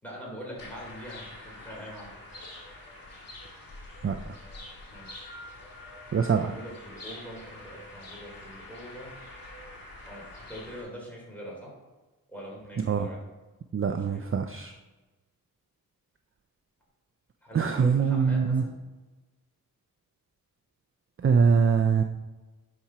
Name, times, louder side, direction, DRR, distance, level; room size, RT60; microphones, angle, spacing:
voice 1, 0.0-2.1 4.9-5.3 6.1-9.1 10.0-11.7 12.3-13.2 13.9-14.4 17.4-18.8, equal, 5° left, -4 dB, 3.2 m, -43 dB
sound 1, 0.6-10.8, left 2 dB, 70° left, 2.5 m, -45 dB
voice 2, 6.1-6.5 12.9-13.1 13.7-14.7 17.5-18.6 21.2-22.0, right 6 dB, 40° right, 6 dB, 0.5 m, -23 dB
10.5 x 4.4 x 5.6 m, 1.2 s
wide cardioid pair, 140°, 35 cm